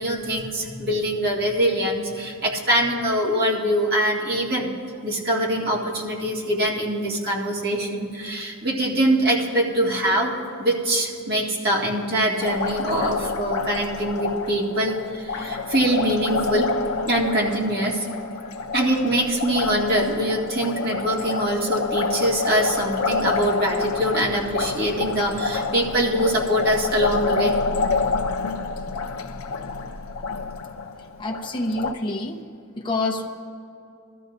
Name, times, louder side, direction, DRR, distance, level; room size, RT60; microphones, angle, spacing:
voice 1, 0.0-4.7 5.0-10.3 10.6-16.7 17.1-18.1 18.7-27.6, right 1 dB, 50° right, -4 dB, 2.0 m, -23 dB
Liquid, 12.4-31.9, left 4 dB, 85° left, 0.6 m, -28 dB
voice 2, 31.2-32.4 32.8-33.3, left 2 dB, 25° left, -1 dB, 0.9 m, -27 dB
21.0 x 13.5 x 2.7 m, 2.5 s
head